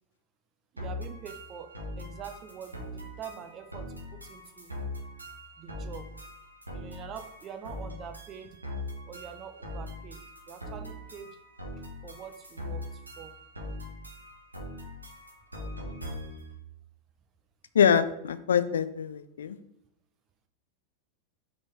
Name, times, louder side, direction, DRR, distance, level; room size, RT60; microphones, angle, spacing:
voice 1, 0.7-4.7 5.6-6.1 6.7-8.6 9.0-11.3 11.8-13.3, right 8 dB, 30° right, 7 dB, 0.8 m, -45 dB
sound 1, 0.8-16.5, left 1 dB, 85° right, 1.2 m, -41 dB
voice 2, 17.7-19.6, left 7 dB, 65° left, 12 dB, 0.4 m, -24 dB
5.2 x 4.3 x 4.8 m, 0.76 s
figure-of-eight pair, 90°, 0 cm